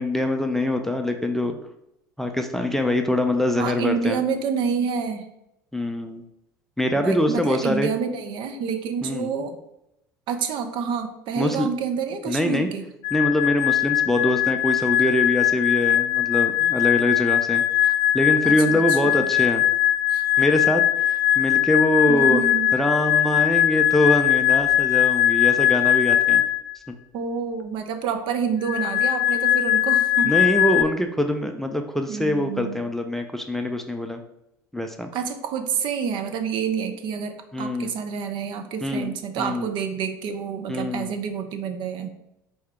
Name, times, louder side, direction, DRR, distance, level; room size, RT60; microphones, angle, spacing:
voice 1, 0.0-1.6 2.2-4.2 5.7-6.2 6.8-7.9 9.0-9.3 11.4-11.7 12.3-12.7 13.1-19.6 20.4-22.4 22.7-26.4 30.2-34.2 34.7-35.1 37.5-37.9 38.8-39.7 40.7-41.1, left 1 dB, 5° left, 5 dB, 0.4 m, -24 dB
voice 2, 3.5-5.3 6.9-9.6 10.3-12.9 18.4-19.3 20.1-20.2 22.1-22.7 27.1-30.3 32.1-32.8 35.1-42.1, right 6 dB, 50° right, 7 dB, 0.6 m, -28 dB
sound 1, 13.0-26.7 28.6-30.8, left 12 dB, 65° left, 0.5 m, -20 dB
4.5 x 2.8 x 3.4 m, 0.83 s
figure-of-eight pair, 65°, 11 cm